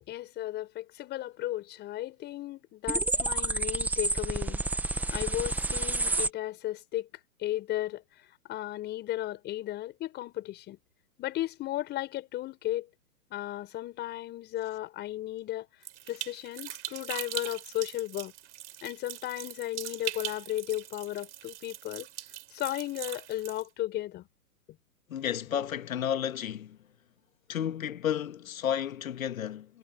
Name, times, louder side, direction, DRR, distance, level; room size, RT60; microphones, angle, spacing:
voice 1, 0.1-4.6 5.1-7.1 7.4-8.0 8.5-10.8 11.2-12.9 13.3-15.7 16.1-18.3 18.8-22.1 22.5-24.3, left 14 dB, 25° left, 5.1 m, -35 dB
sound 1, 2.9-6.3, right 2 dB, 5° right, 1.3 m, -29 dB
sound 2, 15.8-23.7, right 14 dB, 55° right, 3.6 m, -41 dB
voice 2, 25.1-26.8 27.5-29.8, left 9 dB, 70° left, 1.7 m, -32 dB
hypercardioid pair, 140°, 43 cm